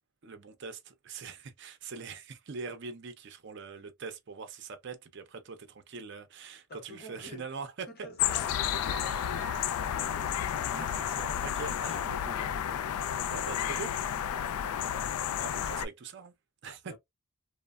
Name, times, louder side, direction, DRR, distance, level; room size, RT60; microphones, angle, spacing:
voice 1, 0.2-7.9 10.7-12.6 13.3-13.9 15.4-16.3 16.6-16.9, right 4 dB, 50° right, 0.5 m, -43 dB
voice 2, 6.7-7.5 7.9-10.2 14.9-15.2 16.8-17.0, left 1 dB, 45° left, 1.0 m, -48 dB
sound 1, 8.2-15.9, left 9 dB, 85° left, 0.3 m, -31 dB
sound 2, 8.5-12.7, right 2 dB, ahead, 0.6 m, -51 dB
3.1 x 2.1 x 2.3 m
head